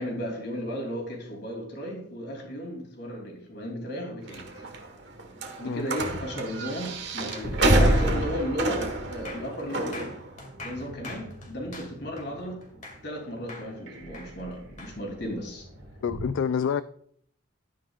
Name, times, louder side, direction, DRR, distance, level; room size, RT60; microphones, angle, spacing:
voice 1, 0.0-4.7 5.6-10.1 10.6-12.6 13.0-15.7, equal, 55° left, 3.1 m, -34 dB
sound 1, 4.3-16.3, right 1 dB, 60° right, 1.4 m, -29 dB
sound 2, 7.3-13.2 13.5-15.0, left 3 dB, 40° left, 2.3 m, -44 dB
voice 2, 16.0-16.8, left 7 dB, 70° left, 0.3 m, -27 dB
12.0 x 9.7 x 2.4 m
head